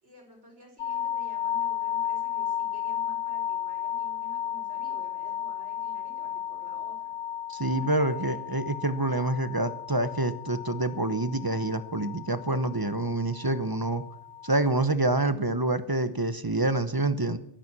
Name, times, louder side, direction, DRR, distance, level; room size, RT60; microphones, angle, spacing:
voice 1, 0.0-7.1 7.8-8.4, right 1 dB, 70° right, 2 dB, 5.2 m, -52 dB
sound 1, 0.8-14.8, left 10 dB, 80° left, 1.1 m, -34 dB
voice 2, 7.5-14.0 14.4-17.4, right 2 dB, 20° right, 12 dB, 0.7 m, -27 dB
16.5 x 12.5 x 6.0 m, 0.75 s
omnidirectional pair, 1.2 m